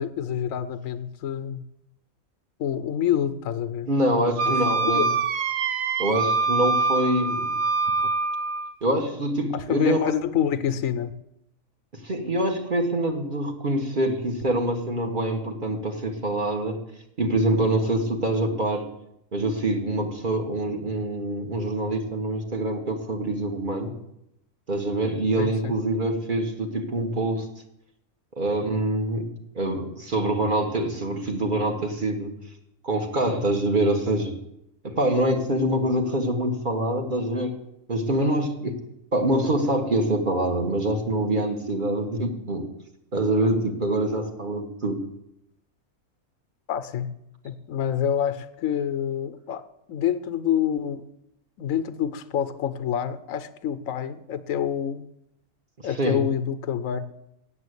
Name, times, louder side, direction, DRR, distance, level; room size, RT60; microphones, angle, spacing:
voice 1, 0.0-1.6 2.6-5.2 8.0-8.1 9.5-11.1 25.4-25.7 46.7-47.1 47.4-49.6 49.9-51.1 51.6-55.1 55.8-57.1, left 9 dB, 80° left, 12 dB, 1.1 m, -27 dB
voice 2, 3.9-5.0 6.0-7.5 8.8-10.1 12.0-16.8 17.2-18.9 19.3-23.9 24.7-27.5 28.4-32.3 32.8-34.4 34.8-37.5 37.9-38.7 39.1-42.7 43.1-45.0 56.0-56.2, right 1 dB, 40° right, 3 dB, 1.4 m, -25 dB
Wind instrument woodwind instrument, 4.4-8.7, right 4 dB, 85° right, 1.2 m, -24 dB
8.2 x 7.6 x 8.0 m, 0.81 s
omnidirectional pair, 1.4 m